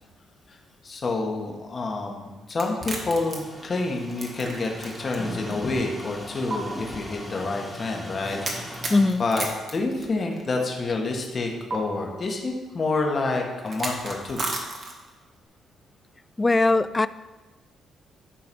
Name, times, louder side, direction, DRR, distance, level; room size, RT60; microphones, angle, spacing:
voice 1, 0.8-8.4 8.7-8.9 9.2-9.4 9.7-14.5, left 3 dB, 40° left, 1 dB, 1.7 m, -28 dB
sound 1, 2.5-5.2 5.5-5.6 6.5-6.6 8.4-10.6 11.7-11.8 13.6-15.1, right 2 dB, 40° right, 1.6 m, -33 dB
sound 2, 2.9-9.1, equal, ahead, 1.8 m, -39 dB
voice 2, 8.9-9.2 16.4-17.1, left 3 dB, 20° left, 15 dB, 0.3 m, -20 dB
11.5 x 3.9 x 5.4 m, 1.2 s
cardioid pair, 90°, 0 cm